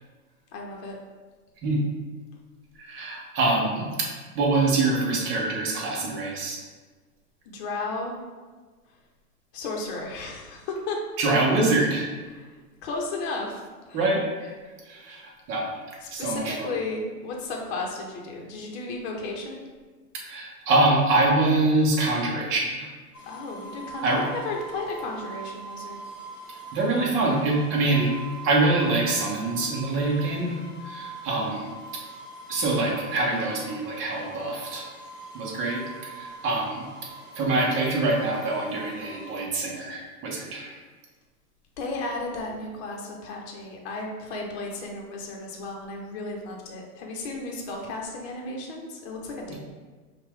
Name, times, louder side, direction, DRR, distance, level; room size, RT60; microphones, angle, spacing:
voice 1, 0.5-1.0 7.5-8.1 9.5-11.0 12.3-12.5 12.8-13.6 13.9-14.0 16.0-19.6 23.2-26.0 41.8-49.6, left 3 dB, 45° left, 0 dB, 1.0 m, -34 dB
voice 2, 2.8-4.1 4.3-6.6 11.2-12.1 13.9-14.5 14.9-15.7 16.1-16.7 20.1-22.9 24.0-24.2 26.7-28.1 28.4-30.6 30.8-32.0 32.5-34.8 35.3-36.8 37.3-40.8, right 2 dB, 25° right, -2 dB, 1.1 m, -25 dB
sound 1, 23.1-39.3, right 3 dB, 15° left, 0.3 m, -43 dB
5.4 x 2.5 x 3.7 m, 1.4 s
hypercardioid pair, 125°, 46 cm